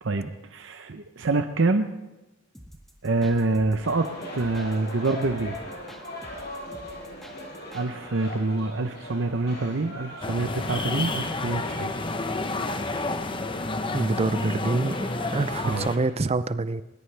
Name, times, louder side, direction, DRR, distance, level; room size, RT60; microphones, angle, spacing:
voice 1, 0.0-1.9 3.0-5.6 7.7-11.9 15.6-15.9, right 3 dB, 70° right, 7 dB, 0.8 m, -26 dB
sound 1, 2.5-7.9, equal, ahead, 1.7 m, -48 dB
sound 2, 3.8-16.1, left 1 dB, 55° left, 6.3 m, -40 dB
sound 3, 10.2-16.0, left 2 dB, 25° left, 0.8 m, -30 dB
voice 2, 13.9-16.8, right 2 dB, 30° right, 14 dB, 0.5 m, -26 dB
20.0 x 19.0 x 3.4 m, 1.0 s
head